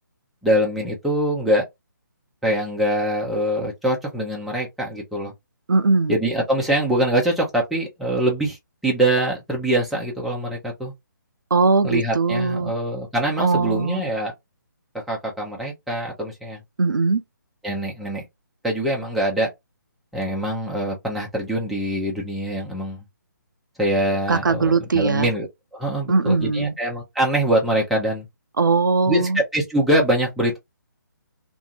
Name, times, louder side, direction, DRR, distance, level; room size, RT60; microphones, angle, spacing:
voice 1, 0.4-1.6 2.4-5.3 6.1-8.6 8.8-10.9 11.8-14.3 15.1-16.6 17.6-18.2 18.6-19.5 20.1-23.0 23.8-25.5 25.7-28.3 29.1-30.6, right 1 dB, ahead, 0.6 m, -23 dB
voice 2, 5.7-6.2 11.5-12.7 13.4-14.0 16.8-17.2 24.3-25.3 26.1-26.7 28.6-29.4, right 4 dB, 70° right, 0.4 m, -20 dB
2.6 x 2.6 x 2.4 m
figure-of-eight pair, 145°, 11 cm